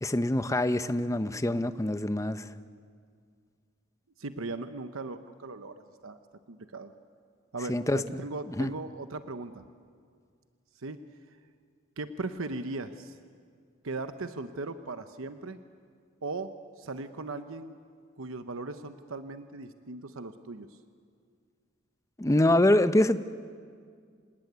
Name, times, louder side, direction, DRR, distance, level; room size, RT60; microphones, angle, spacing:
voice 1, 0.0-2.5 7.7-8.2 8.6-8.7 22.2-23.2, left 1 dB, 15° left, 12 dB, 0.7 m, -25 dB
voice 2, 4.2-6.2 6.5-6.9 7.5-9.6 10.7-11.0 12.0-13.2 13.8-15.6 16.2-17.8 18.2-20.8, right 3 dB, 75° right, 9 dB, 1.0 m, -38 dB
27.0 x 19.5 x 9.5 m, 2.1 s
head